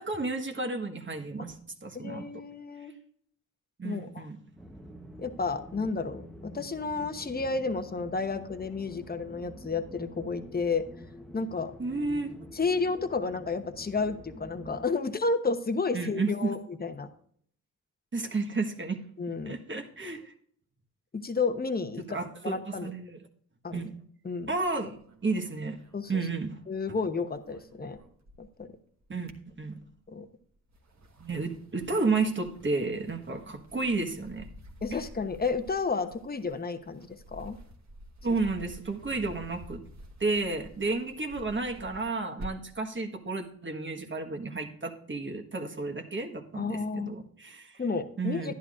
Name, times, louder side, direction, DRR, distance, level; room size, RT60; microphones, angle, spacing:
voice 1, 0.0-1.6 1.8-2.3 3.8-4.4 11.8-12.3 15.9-16.5 18.1-19.0 19.4-20.3 22.1-23.2 23.7-23.9 24.5-25.8 26.1-26.6 29.1-29.3 29.6-29.8 31.2-34.5 38.2-39.8 40.2-47.8 48.2-48.5, right 3 dB, 30° right, 4 dB, 1.4 m, -32 dB
voice 2, 1.9-2.9 3.8-4.3 5.2-10.9 11.3-11.7 12.5-17.1 19.2-19.6 21.1-22.2 22.4-22.9 23.6-23.9 24.2-24.5 25.9-26.2 26.7-28.0 28.4-28.7 30.1-30.3 34.8-37.6 46.6-47.1 47.8-48.5, left 4 dB, 25° left, 9 dB, 1.0 m, -31 dB
sound 1, 4.6-14.9, equal, ahead, 1.0 m, -47 dB
sound 2, 24.6-26.8 27.1-28.7 29.0-30.1 30.6-42.8, equal, 50° right, 1.5 m, -50 dB
11.0 x 10.5 x 2.5 m, 0.63 s
cardioid pair, 60°, 36 cm